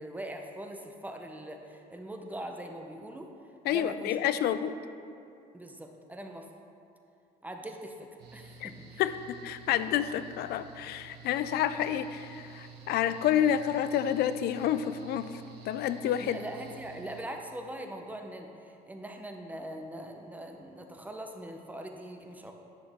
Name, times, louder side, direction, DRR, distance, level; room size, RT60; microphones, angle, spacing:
voice 1, 0.0-3.3 3.7-4.2 5.5-6.5 7.4-9.0 16.2-22.5, right 1 dB, 10° right, 3 dB, 0.7 m, -42 dB
voice 2, 3.7-4.7 8.6-8.7 9.0-15.4 15.7-16.4, left 10 dB, 70° left, 12 dB, 0.4 m, -29 dB
Mechanical fan, 8.2-17.2, right 6 dB, 75° right, 1.3 m, -50 dB
10.5 x 6.2 x 3.5 m, 2.6 s
cardioid pair, 110°, 17 cm